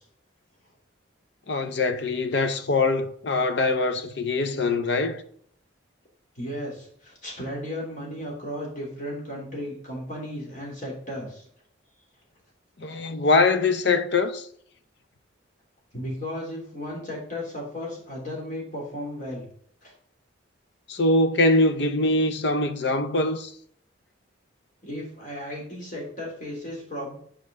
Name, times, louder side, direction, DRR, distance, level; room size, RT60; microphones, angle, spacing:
voice 1, 1.5-5.2 12.8-14.5 20.9-23.5, left 3 dB, 60° left, 0.6 m, -23 dB
voice 2, 6.3-11.4 15.9-19.5 19.8-19.9 24.8-27.1, left 1 dB, 40° left, 3.2 m, -35 dB
6.8 x 5.2 x 3.6 m
head